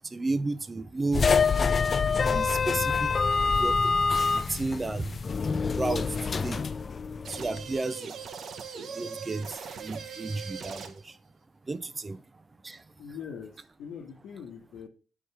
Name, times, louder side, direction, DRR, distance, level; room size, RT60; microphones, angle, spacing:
voice 1, 0.1-1.3 2.2-3.1 3.5-3.9 4.3-5.2 5.7-6.6 7.3-8.2 8.9-11.1 11.7-12.2 12.6-12.8, right 3 dB, 25° right, 0.5 m, -33 dB
sound 1, 1.1-7.6, left 5 dB, 40° left, 0.3 m, -26 dB
sound 2, 7.2-11.1, right 6 dB, 60° right, 0.8 m, -40 dB
voice 2, 13.0-14.9, left 7 dB, 75° left, 1.2 m, -42 dB
4.9 x 4.6 x 5.7 m
cardioid pair, 90°, 0 cm